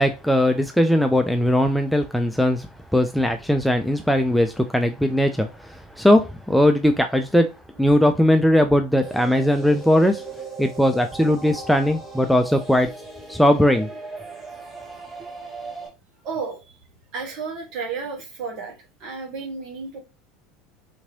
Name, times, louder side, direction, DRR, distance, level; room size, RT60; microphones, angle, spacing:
voice 1, 0.0-2.7 2.9-7.5 7.8-10.2 10.6-12.9 13.3-13.9, left 1 dB, ahead, 0.5 m, -19 dB
sound 1, 9.0-15.9, right 3 dB, 15° right, 1.3 m, -38 dB
voice 2, 16.2-16.6 17.1-18.7 19.0-20.0, right 5 dB, 55° right, 1.5 m, -32 dB
3.7 x 3.0 x 2.8 m
hypercardioid pair, 75°, 0 cm